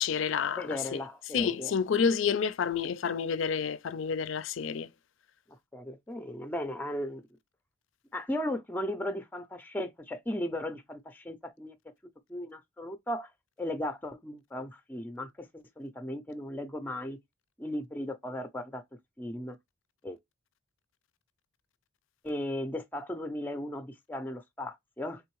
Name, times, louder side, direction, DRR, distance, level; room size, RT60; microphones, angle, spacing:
voice 1, 0.0-1.0 1.3-4.9, left 6 dB, 65° left, 0.4 m, -29 dB
voice 2, 0.5-1.7 5.7-7.2 8.1-11.8 12.3-13.3 13.6-17.2 17.6-18.8 19.2-19.6 20.0-20.2 22.2-25.2, left 1 dB, 10° left, 0.4 m, -36 dB
3.6 x 3.5 x 3.1 m
head